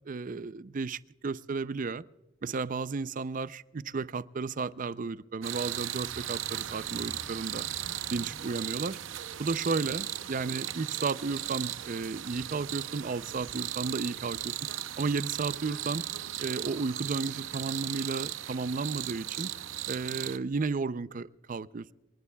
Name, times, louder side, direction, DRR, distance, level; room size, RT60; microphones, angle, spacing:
voice 1, 0.1-2.0 2.4-7.6 8.1-9.0 9.4-14.5 15.0-16.0 16.4-19.5 19.9-21.9, right 4 dB, 45° right, 0.4 m, -33 dB
sound 1, 5.4-20.4, right 12 dB, 80° right, 0.6 m, -37 dB
sound 2, 6.0-11.7 12.1-12.4 12.7-12.8, equal, 15° left, 2.1 m, -53 dB
28.0 x 19.5 x 2.3 m
head